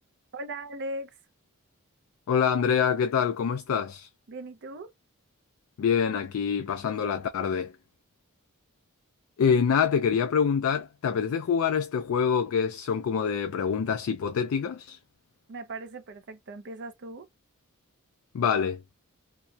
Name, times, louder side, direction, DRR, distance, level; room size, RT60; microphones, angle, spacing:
voice 1, 0.3-1.2 4.3-4.9 15.5-17.3, right 1 dB, 50° right, 0.5 m, -38 dB
voice 2, 2.3-4.1 5.8-7.7 9.4-15.0 18.3-18.8, left 7 dB, 65° left, 0.3 m, -25 dB
2.8 x 2.1 x 2.2 m
head